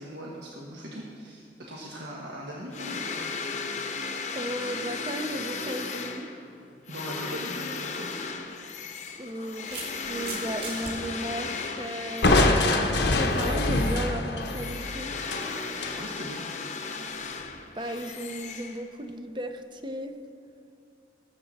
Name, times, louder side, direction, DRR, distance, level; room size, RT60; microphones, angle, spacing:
voice 1, 0.0-3.2 6.9-8.1 16.0-16.6, equal, 80° right, -3 dB, 1.3 m, -39 dB
sound 1, 2.7-12.8 13.1-19.1, left 4 dB, 45° left, 0.8 m, -36 dB
voice 2, 4.3-6.3 9.2-12.6 13.0-15.2 17.7-20.1, right 1 dB, 25° right, 7 dB, 0.6 m, -35 dB
sound 2, 9.0-10.9, right 4 dB, 60° right, 2.0 m, -39 dB
Crushing, 12.2-16.0, left 2 dB, 75° left, 1.0 m, -24 dB
19.0 x 7.5 x 4.1 m, 2.7 s
head